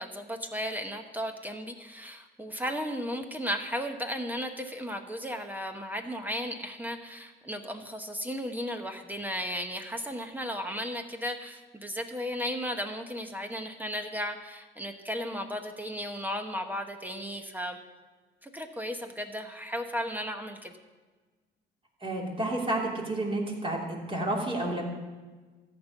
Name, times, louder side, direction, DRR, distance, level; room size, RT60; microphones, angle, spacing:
voice 1, 0.0-17.8 18.4-20.7, equal, 10° right, 5 dB, 1.0 m, -35 dB
voice 2, 22.0-24.8, right 1 dB, 25° right, -2 dB, 3.0 m, -30 dB
13.5 x 5.3 x 8.3 m, 1.3 s
cardioid pair, 90°, 20 cm